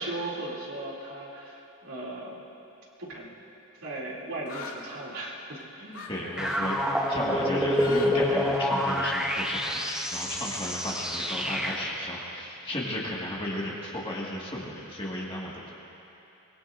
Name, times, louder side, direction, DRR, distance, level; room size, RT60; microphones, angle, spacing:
voice 1, 0.0-2.4 3.0-3.3 3.8-6.1, right 2 dB, 75° right, -4 dB, 2.8 m, -37 dB
sound 1, 4.5-4.8 5.9-6.1 6.3-6.7 7.6-8.1 8.4-9.2, left 5 dB, 70° left, 2.0 m, -40 dB
voice 2, 6.1-6.8 7.1-15.7, left 1 dB, 25° left, -4 dB, 1.8 m, -34 dB
sound 2, 6.4-12.1, equal, 5° right, 0.9 m, -27 dB
24.0 x 22.0 x 2.6 m, 3.0 s
head